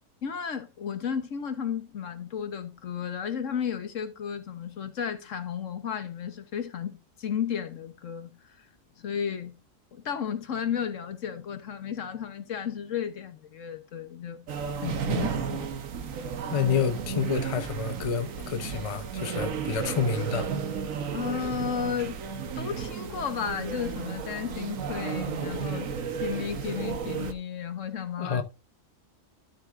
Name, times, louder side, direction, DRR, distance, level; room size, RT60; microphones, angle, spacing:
voice 1, 0.2-8.7 9.0-9.5 9.9-14.4 14.8-15.8 21.1-22.2 22.6-25.9 26.2-28.4, left 8 dB, 65° left, 1.4 m, -33 dB
sound 1, 14.5-27.3, right 6 dB, 75° right, 1.4 m, -33 dB
voice 2, 16.5-20.5 28.2-28.4, left 6 dB, 30° left, 0.7 m, -28 dB
13.0 x 6.5 x 2.5 m
omnidirectional pair, 1.4 m